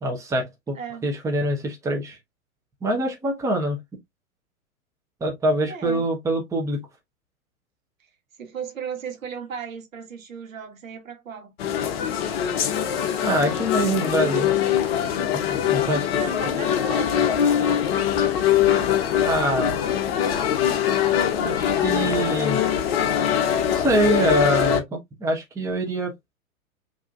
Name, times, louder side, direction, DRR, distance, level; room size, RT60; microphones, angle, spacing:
voice 1, 0.0-0.8 1.0-2.2 2.8-3.8 5.2-6.8 13.2-14.5 15.3-16.1 19.2-19.8 21.4-22.7 23.7-26.1, right 1 dB, 5° right, 0.9 m, -24 dB
voice 2, 0.7-1.1 5.7-6.0 8.4-11.5 16.1-18.2, right 7 dB, 65° right, 1.4 m, -36 dB
sound 1, 11.6-24.8, left 9 dB, 45° left, 0.8 m, -22 dB
4.8 x 2.8 x 2.4 m
figure-of-eight pair, 100°, 42 cm